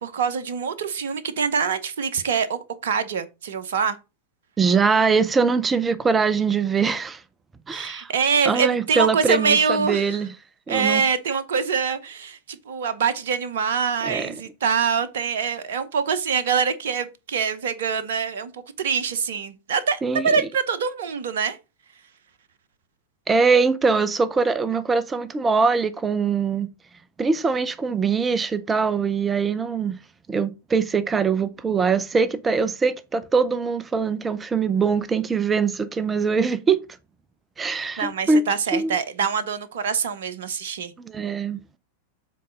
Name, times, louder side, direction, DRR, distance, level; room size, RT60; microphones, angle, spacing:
voice 1, 0.0-4.0 7.7-10.2 10.7-21.6 38.0-40.9, right 6 dB, 60° right, 0.8 m, -24 dB
voice 2, 4.6-7.2 7.7-8.1 8.5-10.3 10.7-11.0 14.0-14.3 20.0-20.4 23.3-26.7 27.2-30.0 30.3-36.8 37.6-38.4 38.7-39.0 41.0-41.6, right 5 dB, 15° right, 0.6 m, -22 dB
7.6 x 4.1 x 5.2 m
figure-of-eight pair, 90°, 0 cm